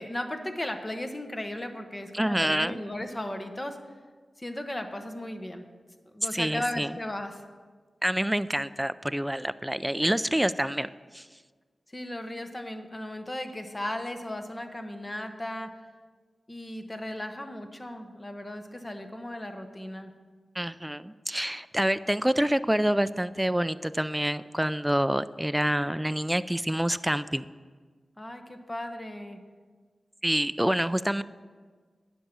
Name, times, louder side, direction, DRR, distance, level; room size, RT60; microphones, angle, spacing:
voice 1, 0.0-3.8 4.4-5.7 6.1-7.4 11.9-15.7 16.5-20.1 28.2-29.4, left 1 dB, 25° left, 6 dB, 1.0 m, -36 dB
voice 2, 2.1-2.8 6.3-6.9 8.0-11.3 20.6-27.5 30.2-31.2, right 1 dB, 10° right, 14 dB, 0.4 m, -27 dB
10.0 x 6.1 x 7.0 m, 1.5 s
cardioid pair, 55°, 0 cm